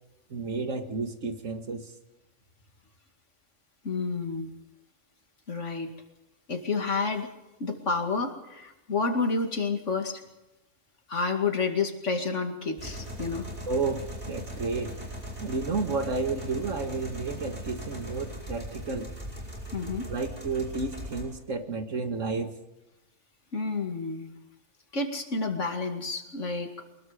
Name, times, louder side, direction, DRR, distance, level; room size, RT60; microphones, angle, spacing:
voice 1, 0.3-1.9 13.7-14.9 15.4-19.1 20.1-22.5, right 4 dB, 80° right, 7 dB, 2.2 m, -31 dB
voice 2, 3.8-4.5 5.5-5.9 6.5-7.3 7.6-10.2 11.1-13.5 19.7-20.1 23.5-24.3 24.9-26.7, left 4 dB, 70° left, 5 dB, 2.7 m, -29 dB
sound 1, 12.8-21.2, equal, 35° right, 5.5 m, -39 dB
24.0 x 21.5 x 5.2 m, 0.97 s
omnidirectional pair, 1.3 m